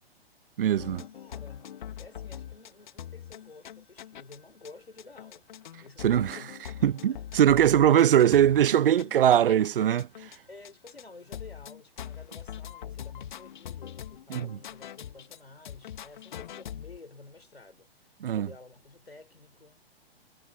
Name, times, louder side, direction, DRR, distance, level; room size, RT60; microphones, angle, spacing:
voice 1, 0.6-1.0 6.0-6.4 6.8-10.1 14.3-14.6 18.2-18.5, right 10 dB, 65° right, 0.5 m, -21 dB
sound 1, 0.8-4.4 4.7-4.8 5.0-10.4 10.6-11.0 11.3-15.4 15.7-17.0, left 10 dB, 50° left, 1.7 m, -42 dB
voice 2, 1.1-5.5 5.8-6.6 7.0-7.5 10.5-18.1 18.3-19.8, left 3 dB, 80° left, 3.9 m, -51 dB
figure-of-eight pair, 120°, 30 cm